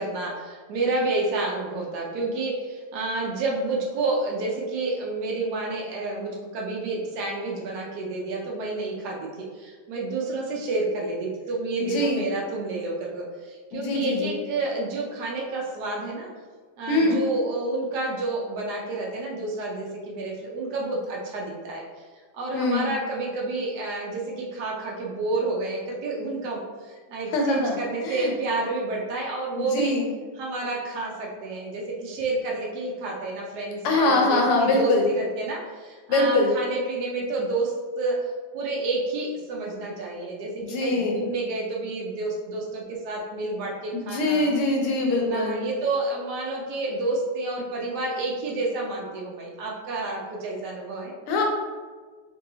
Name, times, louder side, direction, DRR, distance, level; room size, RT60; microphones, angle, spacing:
voice 1, 0.0-16.3 16.8-22.0 22.3-29.9 30.4-44.5 45.0-51.1, right 2 dB, 85° right, -2 dB, 0.8 m, -29 dB
voice 2, 11.8-12.2 13.7-14.3 16.9-17.2 22.5-22.9 27.3-27.8 28.0-28.3 29.6-30.1 33.8-35.1 36.1-36.5 40.7-41.3 43.9-45.6 51.3-51.4, left 2 dB, 90° left, 1 dB, 1.6 m, -23 dB
4.1 x 2.6 x 2.7 m, 1.4 s
omnidirectional pair, 2.4 m